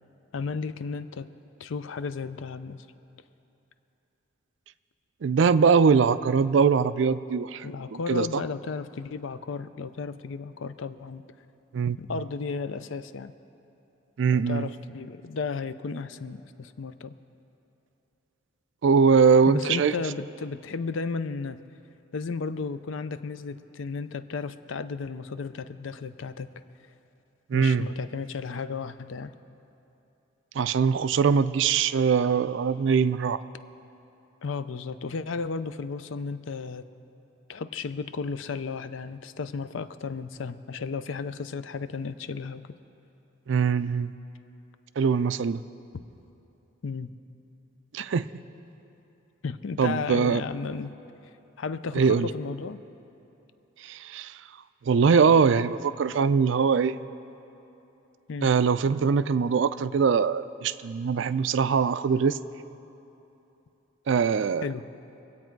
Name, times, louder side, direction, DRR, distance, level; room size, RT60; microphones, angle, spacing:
voice 1, 0.3-1.3 1.6-2.9 7.6-11.2 12.0-13.3 14.3-17.1 19.5-21.6 22.1-26.5 27.5-29.3 34.4-36.8 37.5-42.7 46.8-47.1 49.4-50.9 51.6-52.8 58.3-58.5 64.6-64.8, left 4 dB, 70° left, 13 dB, 0.5 m, -34 dB
voice 2, 5.2-8.4 11.7-12.0 14.2-14.7 18.8-19.9 27.5-27.9 30.6-33.4 43.5-44.1 45.0-45.6 47.9-48.3 49.8-50.4 52.0-52.3 53.8-54.3 54.9-57.0 58.4-62.4 64.1-64.7, right 5 dB, 65° right, 14 dB, 0.4 m, -22 dB
24.5 x 8.4 x 4.6 m, 3.0 s
head